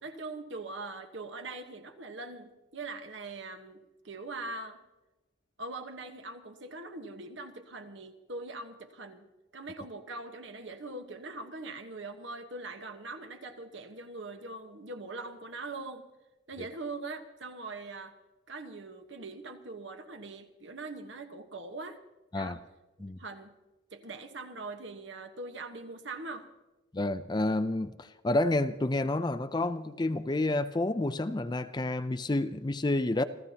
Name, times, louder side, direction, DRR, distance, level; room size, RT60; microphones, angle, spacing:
voice 1, 0.0-4.8 5.6-9.3 9.5-16.0 16.5-18.2 18.5-22.0 22.3-22.6 23.2-23.5 23.9-26.5, right 3 dB, 65° right, 1.3 m, -42 dB
voice 2, 26.9-33.2, left 2 dB, 20° left, 0.4 m, -29 dB
27.5 x 15.0 x 2.9 m
head